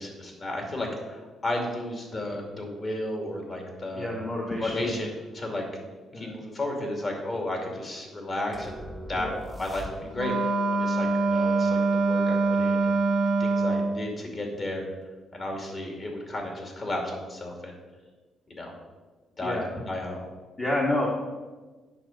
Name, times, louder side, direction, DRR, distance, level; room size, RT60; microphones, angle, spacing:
voice 1, 0.0-4.1 4.5-5.6 6.1-8.8 9.1-9.3 9.6-13.0 13.4-14.8 15.3-17.8 18.5-18.7 19.4-19.6 19.9-20.2, left 1 dB, 40° left, 1 dB, 2.6 m, -33 dB
voice 2, 3.9-5.1 6.1-6.4 9.1-9.3 19.4-19.7 20.6-21.1, left 1 dB, 25° left, -2 dB, 1.3 m, -29 dB
sound 1, 8.5-10.4, equal, 5° left, 1.2 m, -40 dB
Wind instrument woodwind instrument, 10.1-14.0, right 3 dB, 70° right, 0.8 m, -24 dB
8.7 x 6.2 x 5.2 m, 1.3 s
cardioid pair, 90°, 0 cm